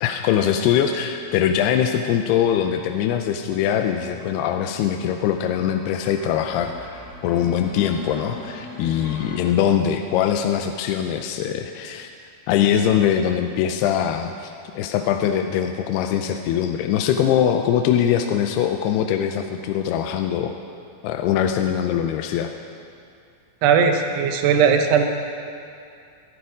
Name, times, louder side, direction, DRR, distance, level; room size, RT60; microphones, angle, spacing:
voice 1, 0.0-12.1 12.5-20.5 21.0-22.5, left 9 dB, 85° left, 5 dB, 2.6 m, -22 dB
sound 1, 2.8-9.4, left 2 dB, 20° right, 2.6 m, -41 dB
voice 2, 23.6-25.1, right 6 dB, 85° right, 4 dB, 3.1 m, -18 dB
23.5 x 9.6 x 5.0 m, 2.4 s
omnidirectional pair, 4.7 m